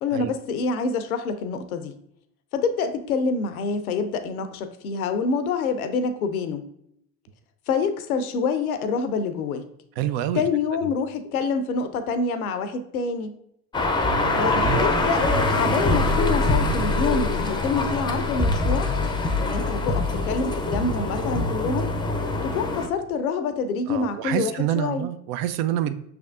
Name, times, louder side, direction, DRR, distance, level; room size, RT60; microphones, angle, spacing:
voice 1, 0.0-1.9 2.5-6.6 7.7-9.6 10.3-13.3 14.4-14.5 14.8-15.2 15.5-18.9 19.4-21.9 22.4-25.1, left 4 dB, 90° left, 10 dB, 0.5 m, -26 dB
voice 2, 10.0-10.4 10.8-10.9 14.2-14.8 23.9-25.9, right 11 dB, 55° right, 12 dB, 0.5 m, -27 dB
sound 1, 13.7-22.9, left 2 dB, 10° left, 0.5 m, -23 dB
5.8 x 3.4 x 2.5 m, 0.75 s
hypercardioid pair, 65°, 42 cm